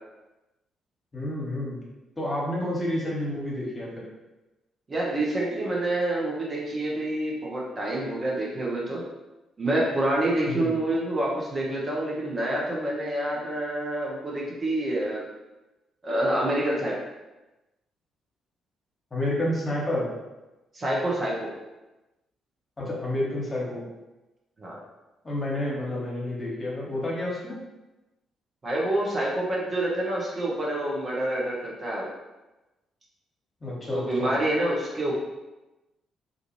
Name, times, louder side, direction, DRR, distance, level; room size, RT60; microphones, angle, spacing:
voice 1, 1.1-1.8 2.2-4.1 10.5-10.7 19.1-20.1 22.8-23.8 25.2-27.6 33.6-34.3, left 1 dB, 30° left, -4 dB, 1.0 m, -29 dB
voice 2, 4.9-9.0 9.6-15.3 16.0-16.9 20.7-21.5 24.6-24.8 28.6-32.1 33.9-35.1, right 1 dB, 40° right, -4 dB, 0.8 m, -27 dB
2.5 x 2.4 x 3.0 m, 1.0 s
hypercardioid pair, 45°, 0 cm